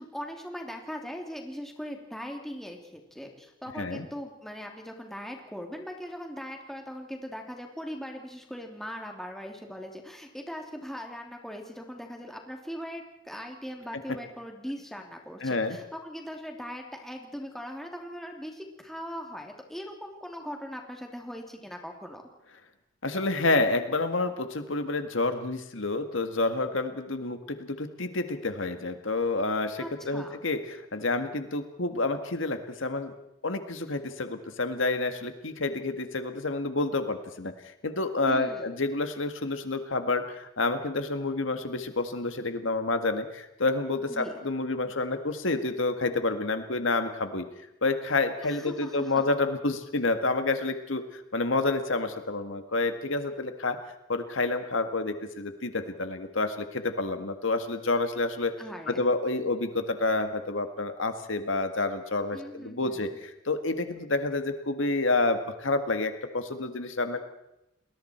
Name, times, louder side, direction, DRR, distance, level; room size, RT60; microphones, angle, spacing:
voice 1, 0.0-22.2 29.8-30.3 38.3-38.7 44.1-44.3 48.4-49.2 58.6-59.1 62.3-63.0, equal, ahead, 2 dB, 2.9 m, -40 dB
voice 2, 15.4-15.8 23.0-33.1 33.4-47.5 47.8-53.8 54.1-58.5 58.9-67.3, left 3 dB, 75° left, 8 dB, 1.8 m, -29 dB
29.5 x 20.5 x 4.5 m, 0.86 s
head